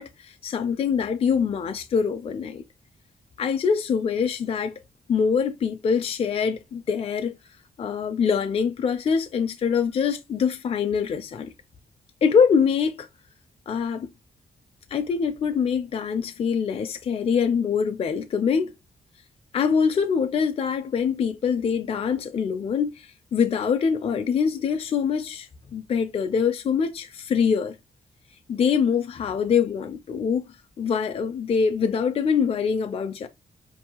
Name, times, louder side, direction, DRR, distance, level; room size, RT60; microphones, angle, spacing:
voice 1, 0.0-2.6 3.4-4.7 5.1-7.3 7.8-11.5 12.2-13.1 13.7-14.1 14.9-18.7 19.5-27.8 28.5-33.3, left 6 dB, 40° left, 0.4 m, -24 dB
5.2 x 2.7 x 2.8 m
wide cardioid pair, 155°, 15 cm